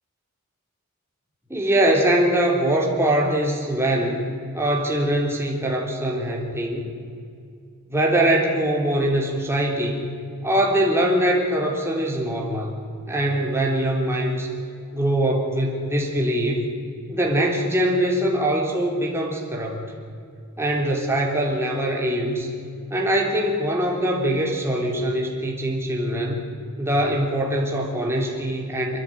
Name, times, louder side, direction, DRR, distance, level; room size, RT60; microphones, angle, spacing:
voice 1, 1.5-4.3 4.5-6.9 7.9-10.1 10.4-12.8 13.1-14.5 14.9-16.7 17.1-19.9 20.6-22.5 22.9-26.4 26.8-29.0, right 1 dB, 10° right, -1 dB, 3.6 m, -22 dB
28.5 x 10.5 x 9.2 m, 2.3 s
head